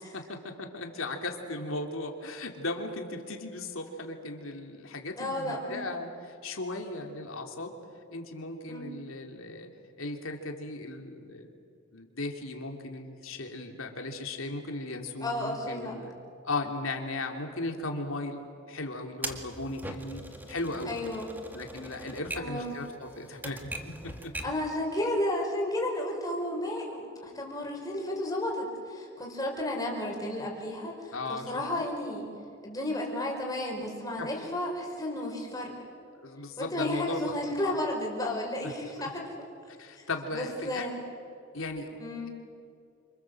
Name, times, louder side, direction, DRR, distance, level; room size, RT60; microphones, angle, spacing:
voice 1, 0.0-7.7 8.1-9.7 10.0-11.5 11.9-16.2 16.4-20.2 20.5-21.0 21.5-24.3 31.1-31.4 34.2-34.3 36.1-37.3 37.6-37.7 39.0-39.1 39.8-40.9 41.5-41.9, left 2 dB, 75° left, 3 dB, 3.0 m, -37 dB
voice 2, 5.2-5.8 8.7-8.8 15.2-15.9 20.8-21.3 22.3-22.8 24.4-32.3 32.6-35.7 36.6-39.3 40.0-41.0 42.0-42.3, left 1 dB, 15° left, 0 dB, 5.1 m, -33 dB
Typewriter, 19.2-24.7, right 1 dB, 10° right, 1.8 m, -41 dB
29.0 x 26.0 x 7.7 m, 2.5 s
head